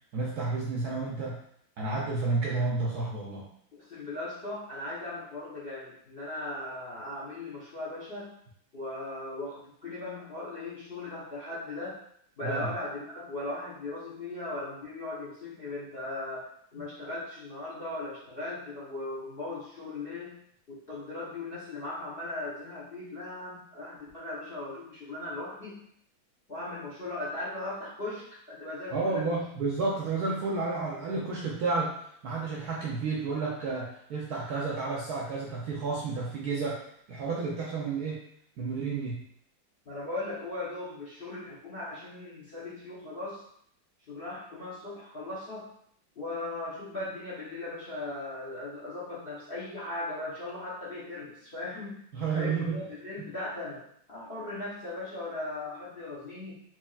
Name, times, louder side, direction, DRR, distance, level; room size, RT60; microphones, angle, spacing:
voice 1, 0.1-1.4 1.8-3.4 12.4-12.7 28.9-36.8 37.1-38.2 38.6-39.2 52.1-52.8 53.2-53.3, right 3 dB, 70° right, -3 dB, 0.9 m, -31 dB
voice 2, 3.7-8.3 8.7-12.0 12.4-20.4 20.7-25.8 26.5-29.3 39.9-43.4 44.1-45.7 46.2-52.0 52.3-53.8 54.1-56.5, left 2 dB, 50° left, -8 dB, 0.6 m, -38 dB
4.6 x 2.9 x 2.3 m, 0.68 s
omnidirectional pair, 2.2 m